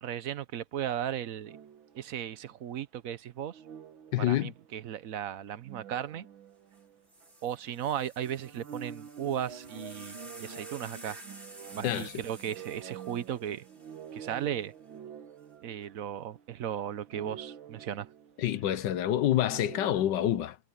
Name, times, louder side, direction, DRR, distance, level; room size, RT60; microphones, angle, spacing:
voice 1, 0.0-1.6 1.9-3.6 4.2-6.3 7.4-11.3 11.7-13.6 14.1-14.7 15.6-18.1, right 10 dB, 60° right, 1.0 m, -36 dB
sound 1, 1.4-2.4 3.5-4.8 5.5-7.3 7.6-7.7 8.2-16.7 17.0-18.7 19.3-20.0, right 7 dB, 85° right, 2.2 m, -47 dB
voice 2, 4.1-4.5 11.8-12.1 18.4-20.6, left 12 dB, 70° left, 1.3 m, -27 dB
sound 2, 6.7-6.8 7.1-14.5 15.4-15.8, right 1 dB, 25° right, 7.8 m, -51 dB
omnidirectional pair, 2.1 m